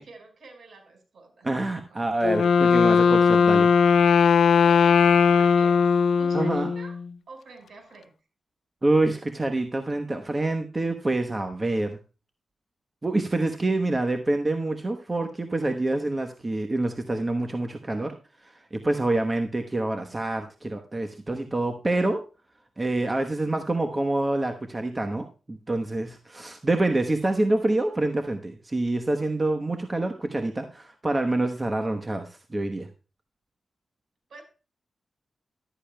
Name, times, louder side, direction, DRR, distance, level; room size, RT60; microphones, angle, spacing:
voice 1, 0.0-1.5 1.9-2.0 4.6-7.0 7.3-8.1 34.3-34.4, right 3 dB, 65° right, 4 dB, 5.0 m, -47 dB
voice 2, 1.4-3.7 6.3-6.7 8.8-12.0 13.0-18.1 18.4-22.2 22.8-32.9, right 2 dB, 25° right, 5 dB, 1.1 m, -26 dB
Wind instrument woodwind instrument, 2.2-7.1, left 6 dB, 85° left, 0.4 m, -19 dB
14.0 x 12.0 x 2.2 m, 0.33 s
wide cardioid pair, 110°, 0 cm